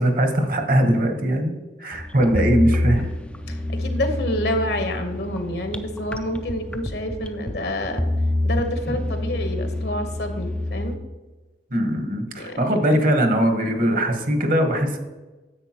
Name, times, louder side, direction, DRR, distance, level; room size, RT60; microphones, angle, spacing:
voice 1, 0.0-1.5 1.8-3.1 11.7-15.0, right 1 dB, 45° right, 5 dB, 1.1 m, -20 dB
sound 1, 1.9-11.0, left 1 dB, 5° left, 0.4 m, -27 dB
voice 2, 3.5-8.0 8.4-10.9 12.4-12.6, left 1 dB, 60° left, 6 dB, 1.1 m, -28 dB
9.9 x 7.9 x 2.9 m, 1.2 s
head